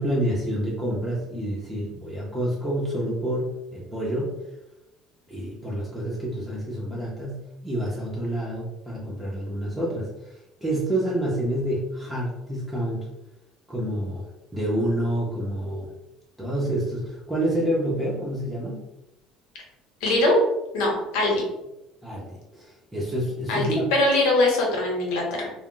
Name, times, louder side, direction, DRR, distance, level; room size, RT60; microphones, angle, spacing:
voice 1, 0.0-4.4 5.3-13.1 13.7-15.9 16.4-18.8 22.0-23.9, right 1 dB, 10° right, -5 dB, 0.6 m, -28 dB
voice 2, 20.0-20.4 20.7-21.4 23.5-25.5, left 2 dB, 90° left, -1 dB, 0.9 m, -22 dB
2.3 x 2.0 x 3.7 m, 0.94 s
cardioid pair, 135°, 0 cm